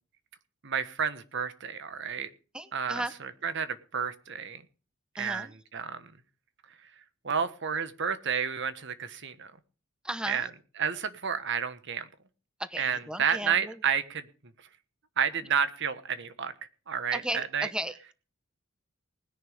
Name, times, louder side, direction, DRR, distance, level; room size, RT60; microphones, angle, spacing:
voice 1, 0.6-2.3 2.7-4.6 5.2-6.1 7.0-9.5 10.3-10.5 10.8-12.1 12.8-14.3 15.2-16.5 16.9-17.7, right 7 dB, 60° right, 12 dB, 1.3 m, -31 dB
voice 2, 2.5-3.1 5.2-5.5 10.0-10.5 12.6-13.7 17.1-18.1, right 1 dB, 5° right, 11 dB, 0.8 m, -35 dB
20.0 x 10.5 x 3.4 m, 0.37 s
head